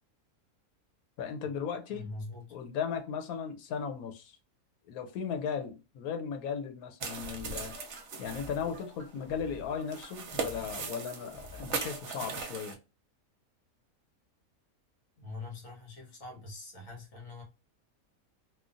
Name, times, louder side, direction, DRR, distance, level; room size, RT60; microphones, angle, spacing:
voice 1, 1.2-2.1 2.5-4.3 4.9-7.7 8.2-12.8, left 7 dB, 90° left, 1.1 m, -36 dB
voice 2, 1.9-2.5 15.2-17.4, left 3 dB, 70° left, 1.4 m, -43 dB
sound 1, 7.0-12.7, right 5 dB, 65° right, 0.8 m, -39 dB
sound 2, 7.2-12.4, left 1 dB, 20° right, 0.3 m, -50 dB
3.0 x 2.2 x 2.5 m
omnidirectional pair, 1.5 m